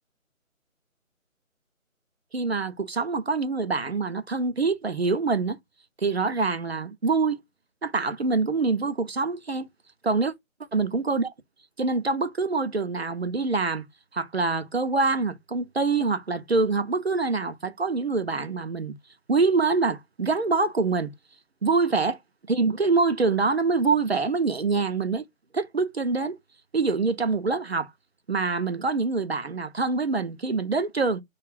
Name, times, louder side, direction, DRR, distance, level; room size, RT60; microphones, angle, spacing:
voice 1, 2.3-5.6 6.0-7.4 7.8-9.7 10.0-10.3 10.7-11.3 11.8-13.8 14.1-18.9 19.3-21.1 21.6-22.2 22.5-25.2 25.5-26.4 26.7-27.9 28.3-31.2, right 4 dB, 50° right, 0.5 m, -25 dB
2.4 x 2.3 x 3.2 m
figure-of-eight pair, 155°, 42 cm